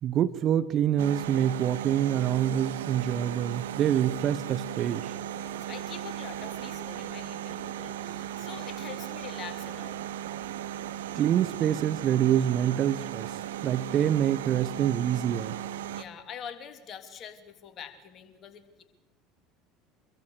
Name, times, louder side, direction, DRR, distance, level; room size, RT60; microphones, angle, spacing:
voice 1, 0.0-5.1 11.1-13.3 13.6-15.6, right 10 dB, 45° right, 14 dB, 1.2 m, -26 dB
sound 1, 1.0-16.0, right 10 dB, 70° right, 1.0 m, -36 dB
voice 2, 5.3-10.0 15.9-18.8, left 8 dB, 40° left, 7 dB, 3.2 m, -44 dB
26.0 x 23.0 x 6.6 m, 1.1 s
figure-of-eight pair, 70°, 0 cm